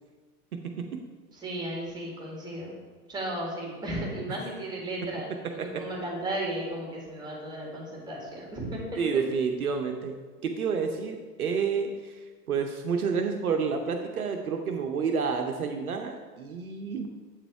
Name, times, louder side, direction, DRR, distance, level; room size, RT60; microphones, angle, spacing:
voice 1, 1.3-2.8 3.1-8.8, right 1 dB, 10° right, -2 dB, 1.7 m, -35 dB
voice 2, 9.0-10.2 10.4-17.1, right 5 dB, 65° right, 4 dB, 0.7 m, -29 dB
8.0 x 4.0 x 4.6 m, 1.4 s
figure-of-eight pair, 100°, 47 cm